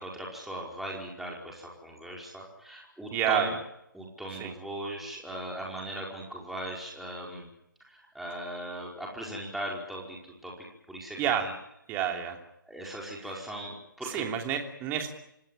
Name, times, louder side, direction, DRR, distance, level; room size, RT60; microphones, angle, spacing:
voice 1, 0.0-3.5 3.9-7.5 7.9-10.2 10.4-11.5 12.6-14.2, right 1 dB, ahead, -3 dB, 4.9 m, -39 dB
voice 2, 3.1-3.6 4.3-4.5 11.2-11.5 11.9-12.4 14.0-15.1, right 9 dB, 15° right, 4 dB, 3.0 m, -29 dB
26.5 x 18.0 x 9.0 m, 0.82 s
figure-of-eight pair, 145°, 11 cm